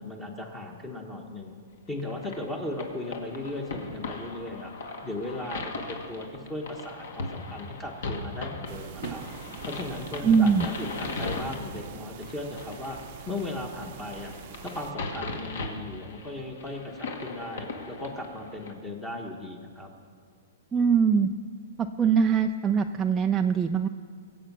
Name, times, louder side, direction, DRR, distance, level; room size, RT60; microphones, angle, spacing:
voice 1, 0.0-1.5 1.9-9.3 9.6-13.0 13.3-14.3 14.6-19.9, left 2 dB, 10° left, 2 dB, 1.1 m, -37 dB
sound 1, 2.0-18.7, left 3 dB, 65° left, 1.9 m, -38 dB
sound 2, 8.7-14.9, right 9 dB, 40° right, 0.7 m, -44 dB
voice 2, 10.2-10.7 20.7-21.3 21.8-23.9, right 6 dB, 10° right, 3 dB, 0.3 m, -22 dB
22.5 x 8.1 x 6.0 m, 2.1 s
hypercardioid pair, 165°, 0 cm